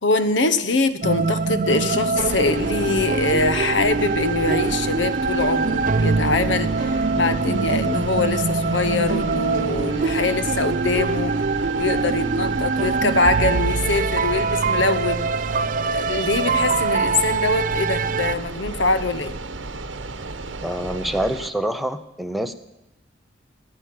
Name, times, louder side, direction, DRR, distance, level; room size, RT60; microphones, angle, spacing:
voice 1, 0.0-11.3 11.8-15.3 15.8-19.3, left 3 dB, 70° left, 12 dB, 1.0 m, -23 dB
sound 1, 1.0-18.3, right 4 dB, 45° right, 0.4 m, -23 dB
sound 2, 2.2-21.5, right 3 dB, 75° right, 1.1 m, -33 dB
voice 2, 20.6-22.5, right 1 dB, ahead, 7 dB, 0.8 m, -26 dB
15.5 x 9.9 x 7.7 m, 0.95 s
head